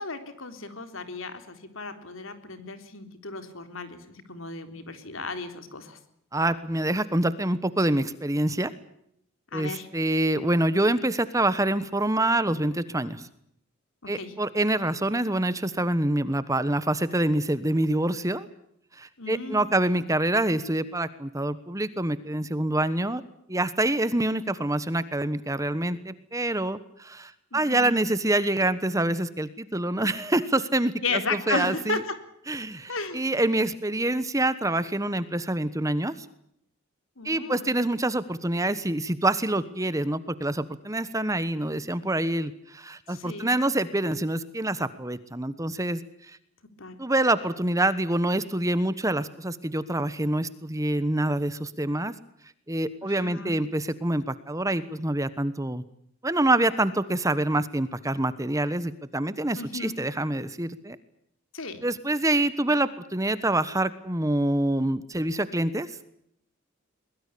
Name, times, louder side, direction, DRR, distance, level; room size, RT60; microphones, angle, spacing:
voice 1, 0.0-6.0 9.5-9.9 14.0-14.3 19.2-19.7 27.5-27.9 31.0-32.0 32.9-33.2 37.2-37.7 43.1-43.5 46.8-47.0 53.0-53.5 59.6-60.0 61.5-61.8, left 3 dB, 70° left, 8 dB, 3.9 m, -34 dB
voice 2, 6.3-8.7 9.5-13.3 14.1-18.5 19.0-23.2 23.5-32.0 32.5-36.1 37.2-46.0 46.3-46.4 47.0-52.1 52.7-55.8 56.2-61.0 61.8-66.0, right 1 dB, 15° right, 14 dB, 1.2 m, -26 dB
23.0 x 21.5 x 8.5 m, 0.72 s
head